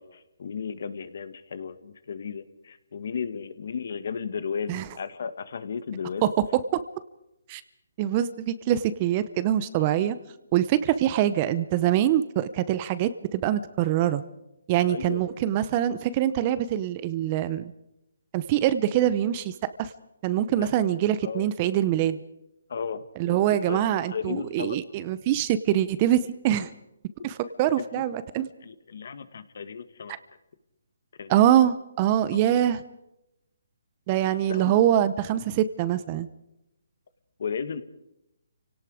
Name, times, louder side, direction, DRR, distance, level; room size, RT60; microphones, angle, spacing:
voice 1, 0.0-6.3 14.9-15.2 20.5-20.7 21.2-21.5 22.7-24.8 26.6-26.7 27.8-28.0 28.6-30.2 31.2-31.3 32.3-32.6 34.2-34.8 37.4-37.8, left 6 dB, 55° left, 13 dB, 1.6 m, -35 dB
voice 2, 8.0-10.2 10.5-14.2 14.7-17.7 18.3-19.9 20.2-22.2 23.2-26.7 27.2-28.5 31.3-32.8 34.1-36.3, right 11 dB, 25° right, 14 dB, 0.8 m, -24 dB
30.0 x 18.0 x 5.0 m, 0.86 s
hypercardioid pair, 165°, 0 cm